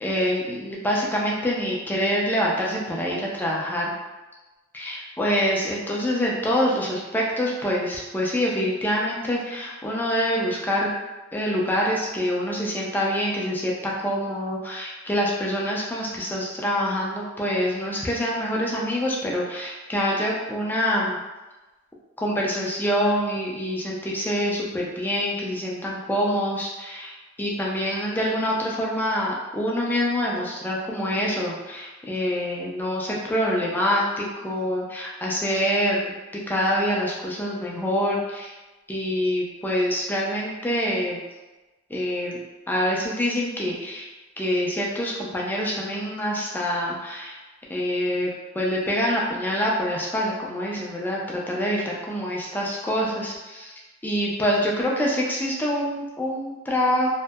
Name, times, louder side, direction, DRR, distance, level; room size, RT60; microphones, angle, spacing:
voice 1, 0.0-3.9 4.7-10.9 11.3-21.2 22.2-36.2 36.5-38.5 38.9-41.2 41.9-42.4 42.7-44.1 44.4-47.4 47.7-53.7 54.0-57.1, equal, 10° left, -3 dB, 0.4 m, -26 dB
2.6 x 2.1 x 2.2 m, 1.1 s
head